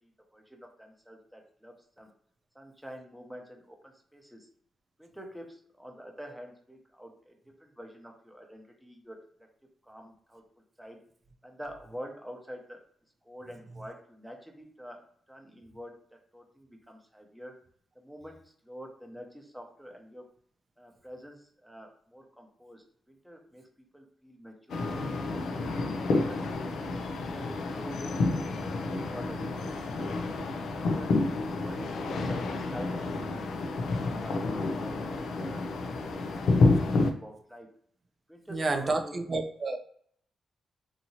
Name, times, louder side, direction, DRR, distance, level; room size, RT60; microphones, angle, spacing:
voice 1, 0.0-2.1 2.5-4.5 5.0-7.3 7.6-9.2 9.8-10.4 10.8-11.0 11.4-12.8 13.2-15.0 15.3-15.9 16.3-17.5 17.9-20.2 20.8-23.7 23.9-26.4 27.0-28.6 28.8-31.1 31.6-33.0 33.8-35.9 36.2-37.7 38.3-39.1, equal, ahead, 2 dB, 0.7 m, -47 dB
sound 1, 24.7-37.1, left 3 dB, 80° left, 0.4 m, -29 dB
voice 2, 38.5-39.8, right 3 dB, 40° right, 6 dB, 0.4 m, -30 dB
2.9 x 2.7 x 2.7 m, 0.62 s
cardioid pair, 85°, 0 cm